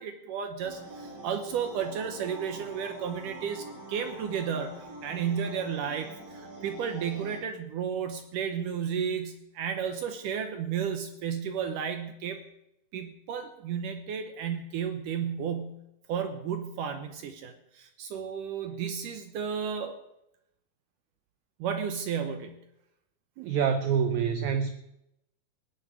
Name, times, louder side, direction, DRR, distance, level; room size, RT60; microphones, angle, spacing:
voice 1, 0.0-12.4 12.9-15.8 16.1-20.0 21.6-22.6, right 7 dB, 70° right, 7 dB, 2.2 m, -33 dB
sound 1, 0.6-7.4, right 2 dB, 30° right, 4.8 m, -44 dB
voice 2, 23.4-24.7, right 7 dB, 90° right, 9 dB, 1.6 m, -26 dB
17.0 x 6.5 x 9.5 m, 0.84 s
omnidirectional pair, 4.4 m